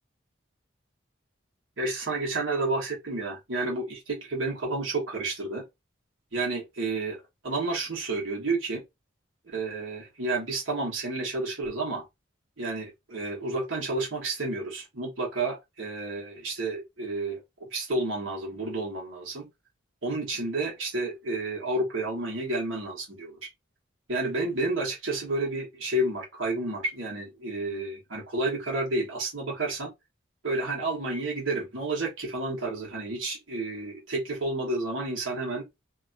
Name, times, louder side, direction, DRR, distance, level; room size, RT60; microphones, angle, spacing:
voice 1, 1.8-5.6 6.3-7.2 7.4-8.8 9.5-12.0 12.6-17.4 17.7-19.5 20.0-23.4 24.1-29.9 30.4-35.7, right 2 dB, 85° right, 1.3 m, -30 dB
2.9 x 2.3 x 2.6 m
head